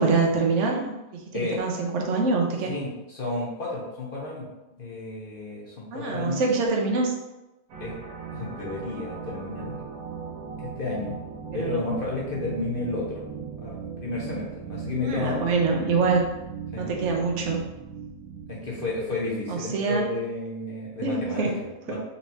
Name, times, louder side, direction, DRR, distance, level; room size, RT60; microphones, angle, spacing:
voice 1, 0.0-2.7 5.9-7.1 11.5-11.8 15.0-16.3 16.8-17.6 19.5-20.1 21.0-21.5 21.9-22.0, right 4 dB, 60° right, 0 dB, 1.0 m, -25 dB
voice 2, 2.7-4.5 4.8-6.5 7.8-7.9 8.3-9.8 10.6-11.2 11.5-13.2 13.6-15.4 16.7-16.9 18.5-22.0, left 3 dB, 45° left, -4 dB, 1.0 m, -32 dB
sound 1, 7.7-19.5, right 6 dB, 85° right, 1.3 m, -38 dB
4.1 x 3.3 x 2.8 m, 1.0 s
omnidirectional pair, 1.5 m